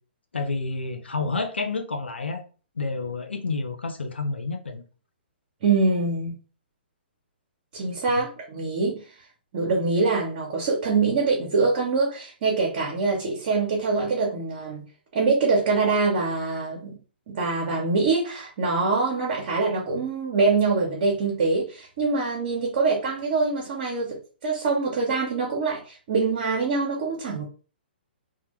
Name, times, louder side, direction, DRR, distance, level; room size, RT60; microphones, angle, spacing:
voice 1, 0.3-2.4 2.8-4.8 8.1-8.2, left 3 dB, 85° left, 0.4 m, -29 dB
voice 2, 5.6-6.3 7.7-9.0 9.5-14.8 15.1-17.0 17.3-27.5, right 4 dB, 50° right, 0.8 m, -24 dB
2.1 x 2.1 x 2.9 m
figure-of-eight pair, 125°, 6 cm